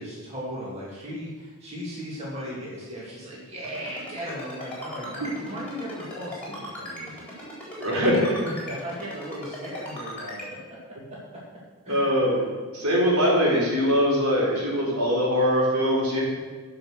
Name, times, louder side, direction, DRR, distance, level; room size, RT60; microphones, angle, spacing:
voice 1, 0.0-7.1 8.4-10.6 11.1-11.4 11.8-12.2, equal, 30° right, -6 dB, 2.4 m, -37 dB
Ringtone, 3.6-10.5, equal, 5° left, 3.8 m, -38 dB
voice 2, 7.8-8.4 11.9-12.4 12.7-16.2, equal, 80° right, -4 dB, 3.9 m, -22 dB
13.5 x 5.8 x 6.4 m, 1.4 s
head